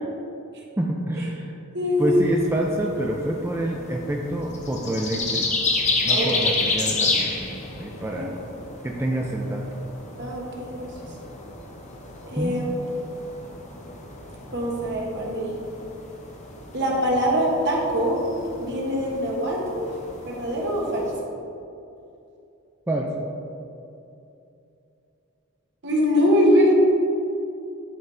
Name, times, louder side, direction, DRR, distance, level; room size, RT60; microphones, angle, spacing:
voice 1, 0.8-1.5 2.0-5.7 6.0-8.3 8.8-9.6 12.4-12.5 22.9-23.2, right 1 dB, 10° right, -1 dB, 0.4 m, -27 dB
voice 2, 1.7-2.2 6.1-6.5 8.2-8.3 10.2-10.9 12.2-12.7 14.5-15.5 16.7-18.2 18.5-19.9 20.2-21.1 25.8-26.8, equal, 55° right, -2 dB, 1.3 m, -23 dB
sound 1, 2.0-21.2, left 3 dB, 35° left, 0.8 m, -31 dB
10.5 x 4.0 x 3.3 m, 2.7 s
head